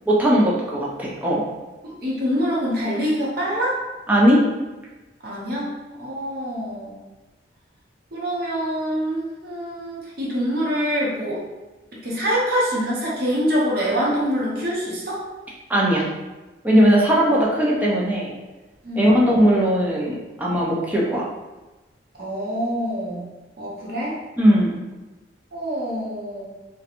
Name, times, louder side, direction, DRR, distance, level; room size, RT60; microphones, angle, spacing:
voice 1, 0.1-1.4 4.1-4.4 15.7-16.0 16.6-18.3 19.0-21.3 24.4-24.8, equal, 10° right, -5 dB, 0.4 m, -18 dB
voice 2, 1.8-3.8 5.2-5.7 6.0-7.0 8.1-11.4 11.9-15.2 18.8-19.2 22.2-23.3 23.6-24.2 25.5-26.4, equal, 55° right, -6 dB, 0.7 m, -25 dB
2.9 x 2.2 x 2.5 m, 1.1 s
head